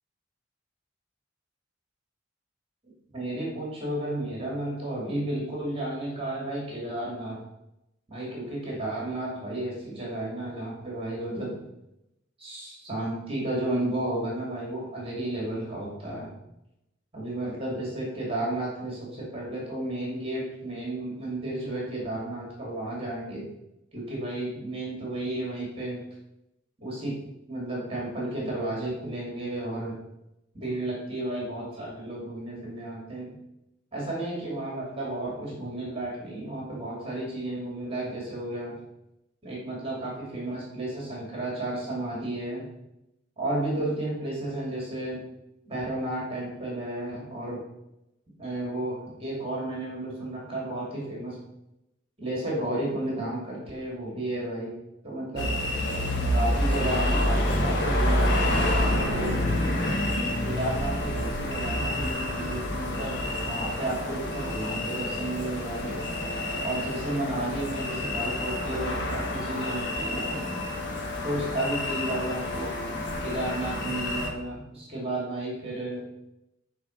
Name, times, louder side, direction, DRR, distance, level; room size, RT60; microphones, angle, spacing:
voice 1, 3.1-7.4 8.1-11.6 12.4-16.3 17.1-23.4 23.9-26.0 26.8-27.2 27.5-29.9 30.5-33.4 33.9-38.8 39.4-42.7 43.4-45.3 45.7-47.7 48.4-51.4 52.2-54.7 55.0-55.5 56.3-59.4 60.4-66.0 66.6-70.4 71.2-72.7 73.2-76.1, right 1 dB, 30° right, -3 dB, 2.5 m, -32 dB
sound 1, 55.4-74.3, left 1 dB, 60° left, 1.6 m, -28 dB
9.1 x 5.0 x 5.8 m, 0.89 s
head